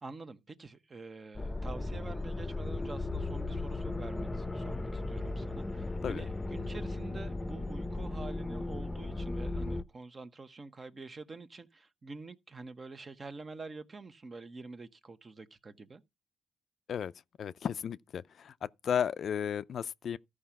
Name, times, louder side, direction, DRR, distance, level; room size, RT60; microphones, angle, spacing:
voice 1, 0.0-16.0, right 3 dB, 30° right, 1.2 m, -47 dB
sound 1, 1.3-9.8, left 2 dB, 15° left, 0.8 m, -36 dB
voice 2, 17.4-20.2, left 8 dB, 60° left, 0.5 m, -34 dB
13.5 x 5.1 x 5.8 m
cardioid pair, 90°, 0 cm